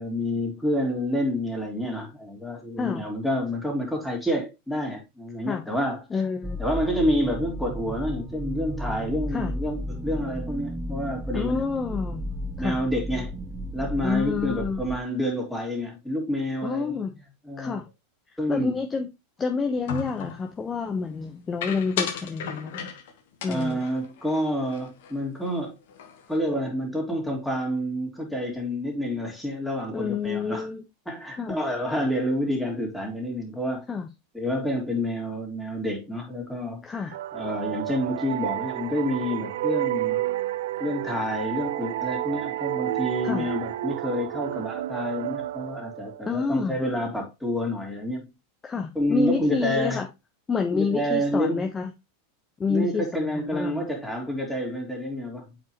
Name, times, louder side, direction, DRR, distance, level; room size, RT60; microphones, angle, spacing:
voice 1, 0.0-6.0 6.6-11.6 12.6-13.4 13.7-17.0 17.4-17.8 18.4-18.8 23.5-25.7 26.3-30.7 31.1-33.9 34.3-40.2 40.8-48.3 48.9-50.0 50.7-51.7 52.7-55.5, equal, ahead, 3.1 m, -28 dB
voice 2, 6.1-6.6 9.3-9.5 11.3-12.2 12.6-12.8 14.0-14.8 16.6-17.1 17.6-17.8 18.5-19.1 19.4-22.9 23.4-23.8 29.9-30.8 31.4-31.6 33.9-34.1 36.8-37.1 43.2-43.5 46.3-46.7 48.6-50.1 50.5-51.9 52.6-53.9, left 5 dB, 20° left, 1.0 m, -28 dB
sound 1, 6.4-15.0, equal, 20° right, 0.7 m, -34 dB
sound 2, 19.9-20.5 21.6-23.1 23.4-25.1 25.4-25.6 25.9-26.4, left 7 dB, 65° left, 1.3 m, -35 dB
sound 3, 37.1-46.5, right 15 dB, 70° right, 0.5 m, -30 dB
8.0 x 4.8 x 3.1 m
hypercardioid pair, 95°, 0 cm